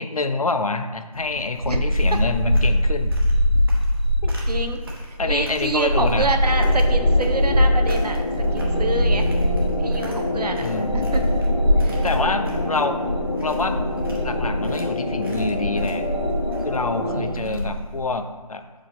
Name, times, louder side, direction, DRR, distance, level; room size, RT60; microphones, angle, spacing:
voice 1, 0.0-3.1 4.2-4.3 5.2-6.3 10.6-11.2 12.0-13.0 13.4-13.8 14.2-16.0 16.6-18.6, left 3 dB, 65° left, 8 dB, 0.6 m, -26 dB
sound 1, 1.1-18.0, equal, 35° right, 1.1 m, -22 dB
voice 2, 4.5-4.8 5.1-8.2 8.5-9.3 9.8-10.7 10.9-11.3 11.8-12.0 17.1-17.8, right 2 dB, 80° right, 5 dB, 0.8 m, -27 dB
sound 2, 6.4-17.2, left 2 dB, 20° left, 0.9 m, -28 dB
5.5 x 4.9 x 3.8 m, 1.3 s
figure-of-eight pair, 175°, 20 cm